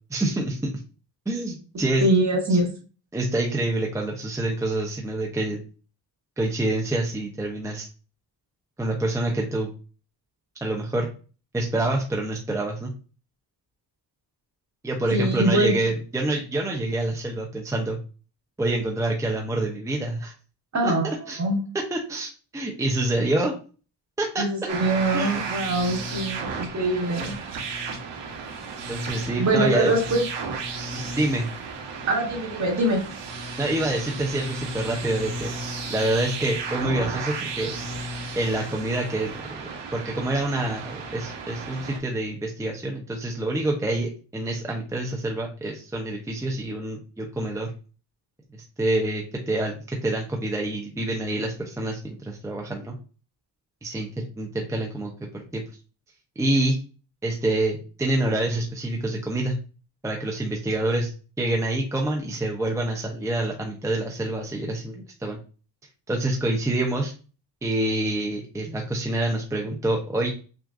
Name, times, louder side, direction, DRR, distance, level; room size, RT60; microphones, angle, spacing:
voice 1, 0.1-0.8 1.3-2.0 2.5-2.6 3.1-5.6 6.4-7.9 8.8-9.7 10.6-11.1 11.5-12.9 14.8-18.0 18.6-20.3 20.8-21.4 21.9-23.6 24.2-24.5 25.1-25.4 28.9-29.9 30.9-31.5 33.6-35.5 35.9-37.7 38.3-47.7 48.8-53.0 53.8-55.6 56.4-56.8 57.2-59.6 60.0-61.1 61.4-65.4 66.1-67.1 67.6-70.3, right 2 dB, 10° right, 0 dB, 0.6 m, -27 dB
voice 2, 2.0-2.7 15.1-15.7 20.7-21.6 24.4-27.4 29.4-30.2 32.1-33.0, right 1 dB, 40° right, 0 dB, 1.5 m, -23 dB
sound 1, 24.7-42.0, right 4 dB, 85° right, 1.0 m, -34 dB
6.0 x 2.5 x 2.4 m, 0.36 s
wide cardioid pair, 135°, 42 cm